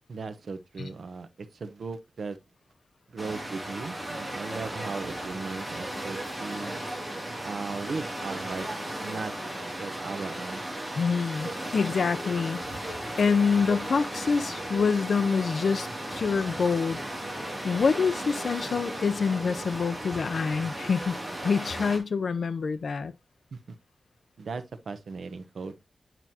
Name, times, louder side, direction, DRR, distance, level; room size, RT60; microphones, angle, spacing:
voice 1, 0.1-2.4 3.1-6.8 7.4-8.7 9.0-9.3 9.8-10.6 23.5-23.8 24.4-25.7, right 4 dB, 70° right, 0.8 m, -37 dB
sound 1, 3.2-22.0, right 1 dB, 10° right, 2.3 m, -36 dB
voice 2, 11.0-17.0 17.6-21.1 21.4-23.1, left 5 dB, 65° left, 0.5 m, -26 dB
9.1 x 6.0 x 2.8 m
wide cardioid pair, 170°, 0 cm